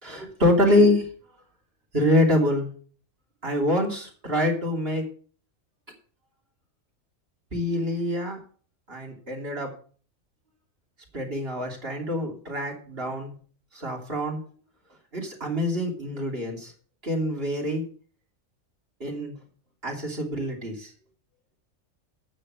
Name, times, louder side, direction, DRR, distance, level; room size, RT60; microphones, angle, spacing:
voice 1, 0.0-1.1 1.9-2.7 3.4-5.0 7.5-8.4 8.9-9.7 11.1-13.3 13.7-14.4 15.1-16.7 17.0-17.8 19.0-19.3 19.8-20.9, left 1 dB, 45° right, 0 dB, 3.3 m, -25 dB
9.3 x 6.6 x 7.6 m, 0.44 s
omnidirectional pair, 1.4 m